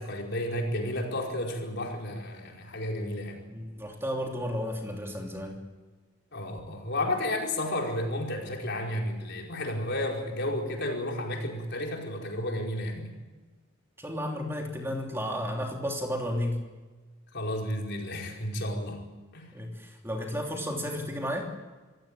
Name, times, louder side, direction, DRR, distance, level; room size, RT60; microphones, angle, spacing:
voice 1, 0.0-3.4 6.3-13.1 17.3-19.0 19.3-19.5, left 1 dB, 55° left, 0 dB, 4.8 m, -32 dB
voice 2, 3.5-5.6 14.0-16.6 19.5-21.5, equal, 10° right, 1 dB, 3.1 m, -33 dB
26.0 x 16.5 x 8.9 m, 1.3 s
head